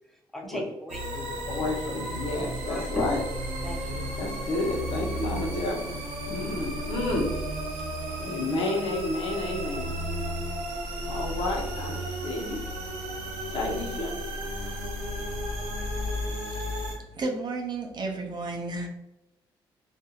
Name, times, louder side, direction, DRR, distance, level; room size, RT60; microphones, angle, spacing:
voice 1, 0.3-1.4 2.7-3.2 3.6-4.2, left 1 dB, ahead, 1 dB, 0.6 m, -36 dB
sound 1, 0.9-17.0, equal, 80° right, 0.7 m, -33 dB
voice 2, 1.5-3.2 4.2-6.0 6.3-7.3 8.2-9.9 11.1-12.6 13.5-14.1, left 2 dB, 60° left, -3 dB, 1.0 m, -30 dB
voice 3, 16.4-18.9, right 3 dB, 45° right, 2 dB, 0.5 m, -33 dB
2.6 x 2.5 x 2.4 m, 0.91 s
supercardioid pair, 55°, 10 cm